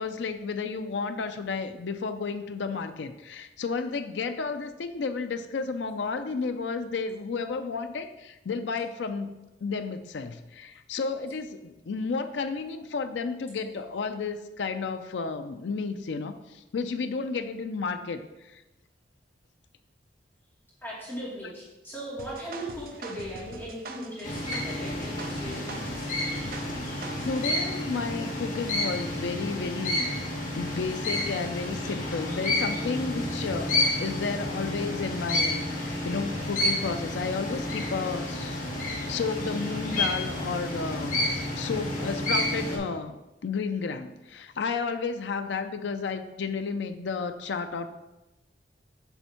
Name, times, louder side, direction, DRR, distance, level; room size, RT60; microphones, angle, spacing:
voice 1, 0.0-9.3 9.6-18.6 27.3-30.3 30.5-38.6 39.1-43.1 43.4-47.9, left 4 dB, 75° left, 8 dB, 0.4 m, -32 dB
voice 2, 20.8-26.1 33.1-33.4, equal, 10° left, -7 dB, 2.2 m, -38 dB
sound 1, 22.2-27.5, right 3 dB, 55° right, 0.6 m, -43 dB
sound 2, 24.2-42.8, left 1 dB, 50° left, 1.8 m, -30 dB
7.1 x 3.4 x 5.7 m, 1.0 s
head